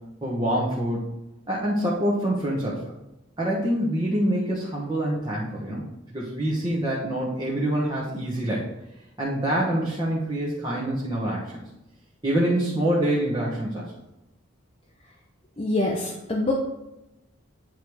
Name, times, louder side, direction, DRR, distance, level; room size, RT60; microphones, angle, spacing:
voice 1, 0.2-1.0 1.5-2.8 3.4-8.6 9.2-11.6 12.2-13.9, right 1 dB, 20° right, -6 dB, 1.3 m, -26 dB
voice 2, 15.6-16.5, left 2 dB, 30° left, -2 dB, 0.8 m, -25 dB
9.1 x 3.4 x 4.6 m, 0.91 s
head